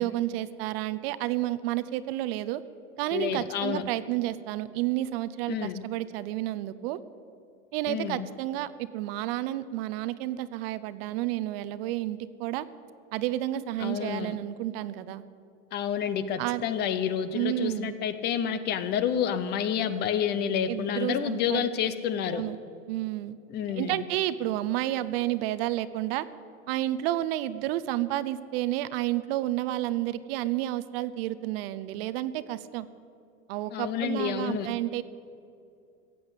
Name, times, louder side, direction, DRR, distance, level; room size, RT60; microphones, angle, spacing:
voice 1, 0.0-2.6 3.0-7.0 7.7-12.7 13.1-15.2 16.4-16.6 17.3-18.0 20.7-21.7 22.3-22.6 22.9-23.4 23.7-26.3 26.7-32.9 33.5-35.0, right 15 dB, 50° right, 15 dB, 0.6 m, -30 dB
voice 2, 3.1-3.8 5.5-5.8 7.9-8.3 13.8-14.4 15.7-22.4 23.5-24.0 33.7-34.7, left 8 dB, 25° left, 12 dB, 0.6 m, -29 dB
15.5 x 8.7 x 8.1 m, 2.6 s
supercardioid pair, 150°, 38 cm